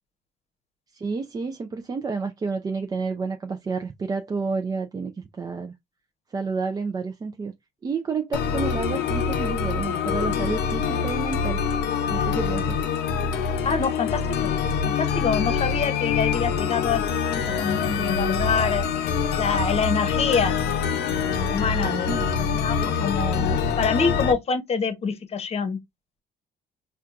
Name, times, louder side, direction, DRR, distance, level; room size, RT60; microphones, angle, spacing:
voice 1, 0.9-5.7 6.3-7.5 7.8-11.6 12.1-12.8 21.8-22.3, right 4 dB, 20° right, 0.4 m, -30 dB
sound 1, 8.3-24.3, left 6 dB, 75° left, 0.7 m, -25 dB
voice 2, 13.6-14.5 14.8-17.0 17.3-18.8 19.4-20.8 21.4-22.1 22.5-25.8, left 5 dB, 35° left, 0.9 m, -26 dB
4.3 x 2.3 x 2.5 m
cardioid pair, 110°, 17 cm